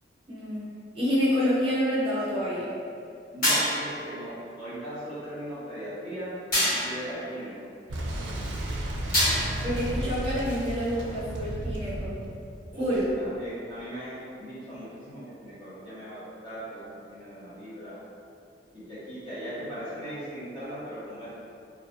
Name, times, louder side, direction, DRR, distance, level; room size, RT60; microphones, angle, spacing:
voice 1, 0.3-0.6 0.9-2.7 9.6-12.1 12.8-13.1, equal, 30° right, -9 dB, 0.5 m, -27 dB
voice 2, 3.3-6.3 6.8-7.5 10.0-10.1 10.9-11.1 12.7-18.0 18.7-21.3, right 1 dB, 25° left, -13 dB, 1.1 m, -39 dB
sound 1, 3.4-4.0 6.5-7.1 9.1-9.7, equal, 50° left, 1.3 m, -25 dB
Boom, 7.9-13.5, right 1 dB, 90° right, 0.4 m, -33 dB
2.6 x 2.3 x 2.5 m, 2.4 s
head